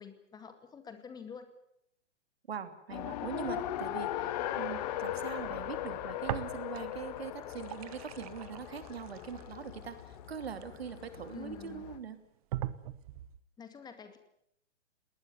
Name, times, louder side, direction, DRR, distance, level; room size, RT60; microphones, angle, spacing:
voice 1, 0.0-1.5 11.3-11.9 13.6-14.2, left 7 dB, 10° left, 8 dB, 2.1 m, -47 dB
voice 2, 2.5-12.2, right 7 dB, 60° right, 10 dB, 2.9 m, -42 dB
Race car auto racing, 2.9-12.0, left 11 dB, 35° left, 1.9 m, -39 dB
sound 1, 6.2-7.0 7.3-11.3 11.9-12.0 12.5-13.4, right 13 dB, 30° right, 1.1 m, -41 dB
20.5 x 19.5 x 9.3 m, 0.76 s
figure-of-eight pair, 120°, 36 cm